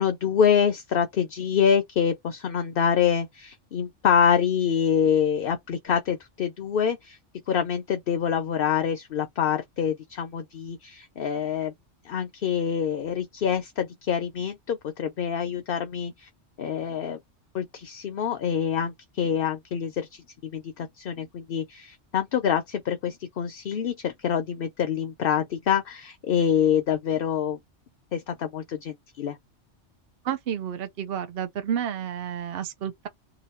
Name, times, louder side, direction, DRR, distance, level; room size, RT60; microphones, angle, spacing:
voice 1, 0.0-7.2 7.5-11.7 12.0-16.3 16.6-17.2 17.5-27.6 28.1-29.4, left 8 dB, 55° left, 0.8 m, -26 dB
voice 2, 30.2-33.1, right 9 dB, 60° right, 0.9 m, -30 dB
2.8 x 2.6 x 4.2 m
omnidirectional pair, 1.2 m